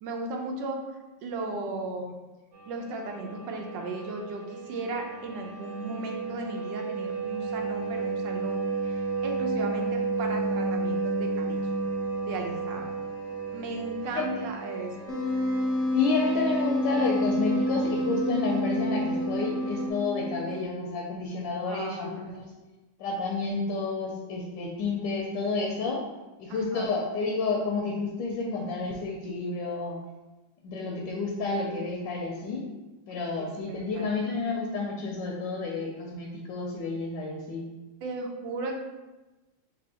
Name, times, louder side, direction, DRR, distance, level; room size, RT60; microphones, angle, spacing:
voice 1, 0.0-0.9 1.2-2.2 2.7-11.6 12.3-12.9 13.5-15.1 21.7-22.2 26.5-26.9 33.7-34.1 38.0-38.7, right 2 dB, 75° right, 2 dB, 1.3 m, -36 dB
sound 1, 2.5-19.9, right 3 dB, 55° right, 0.7 m, -33 dB
voice 2, 14.0-14.5 15.9-22.5 23.0-26.0 26.4-30.0 30.6-32.7 33.1-37.6, left 4 dB, 80° left, -1 dB, 1.3 m, -30 dB
Wind instrument woodwind instrument, 15.1-20.5, left 1 dB, 65° left, 0.8 m, -28 dB
3.4 x 2.7 x 4.1 m, 1.1 s
omnidirectional pair, 2.0 m